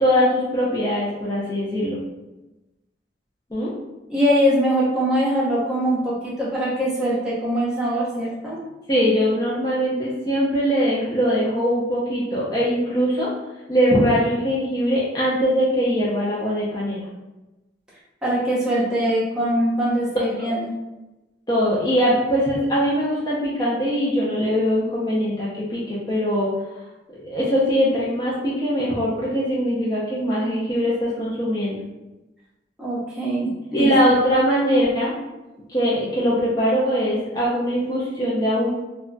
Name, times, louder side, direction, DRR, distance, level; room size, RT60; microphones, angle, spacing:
voice 1, 0.0-2.0 3.5-3.7 8.9-13.3 13.7-17.1 20.4-20.5 21.5-26.5 27.2-31.8 33.7-35.1 35.7-38.7, equal, 25° left, -7 dB, 0.5 m, -21 dB
voice 2, 4.1-8.6 18.2-20.7 32.8-33.9, equal, 5° right, -8 dB, 0.8 m, -22 dB
2.2 x 2.2 x 3.8 m, 1.0 s
head